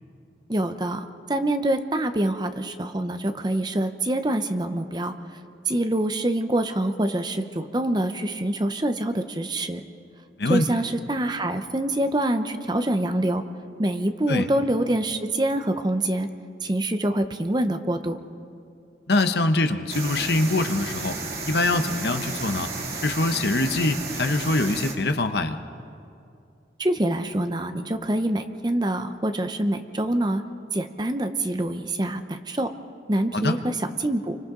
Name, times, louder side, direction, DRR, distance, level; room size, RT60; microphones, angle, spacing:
voice 1, 0.5-5.1 5.7-9.8 10.5-13.4 13.8-16.3 16.6-18.2 26.8-30.4 30.7-32.7 33.1-34.4, right 1 dB, 25° right, 8 dB, 0.8 m, -25 dB
voice 2, 19.1-21.2 21.4-22.7 23.0-25.6 33.3-33.6, left 2 dB, 65° left, 8 dB, 1.0 m, -23 dB
sound 1, 19.9-24.9, right 3 dB, 55° right, 2.8 m, -33 dB
29.5 x 25.0 x 3.9 m, 2.5 s
head